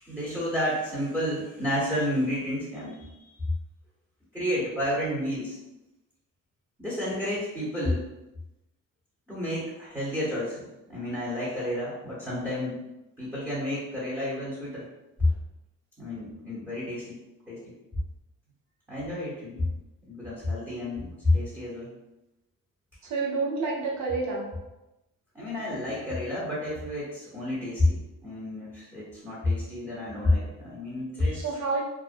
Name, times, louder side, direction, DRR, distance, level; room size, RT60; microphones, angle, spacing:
voice 1, 0.0-3.3 4.3-5.6 6.8-8.0 9.3-12.8 13.2-14.8 15.2-15.3 16.0-17.2 17.5-17.7 18.9-19.7 20.1-21.9 25.3-31.4, left 1 dB, 10° right, -9 dB, 0.9 m, -30 dB
voice 2, 23.0-24.5 31.3-31.8, right 4 dB, 65° right, -2 dB, 0.7 m, -29 dB
2.5 x 2.0 x 2.5 m, 0.98 s
cardioid pair, 90°, 30 cm